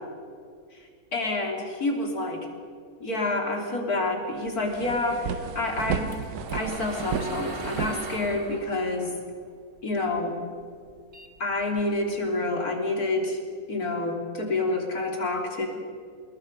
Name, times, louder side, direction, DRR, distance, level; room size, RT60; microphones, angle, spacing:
voice 1, 1.1-2.4 3.0-6.1 6.5-9.1 9.8-10.3 11.4-13.4 13.7-15.7, left 2 dB, 70° left, 1 dB, 3.6 m, -28 dB
sound 1, 4.1-4.2 4.5-8.7, right 6 dB, 80° right, 1.6 m, -33 dB
sound 2, 5.7-10.2 10.6-12.1, right 2 dB, 50° right, 2.3 m, -39 dB
27.0 x 20.5 x 5.3 m, 2.2 s
omnidirectional pair, 1.6 m